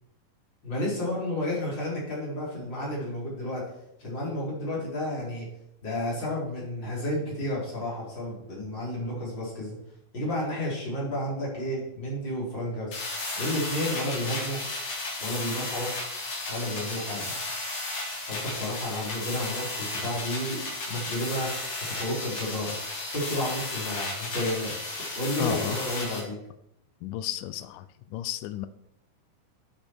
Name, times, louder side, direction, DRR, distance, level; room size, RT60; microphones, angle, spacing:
voice 1, 0.6-3.6 4.0-5.5 5.8-9.8 10.1-13.0 13.4-14.6 15.2-15.9 16.5-17.4 18.3-20.6 20.9-22.7 23.1-24.7 25.2-26.4, left 1 dB, 35° left, -5 dB, 4.7 m, -31 dB
sound 1, 12.9-26.2, left 2 dB, 60° left, 4.4 m, -34 dB
voice 2, 25.4-26.0 27.0-28.7, left 13 dB, 90° left, 13 dB, 2.2 m, -33 dB
13.0 x 8.7 x 4.6 m, 0.80 s
omnidirectional pair, 3.7 m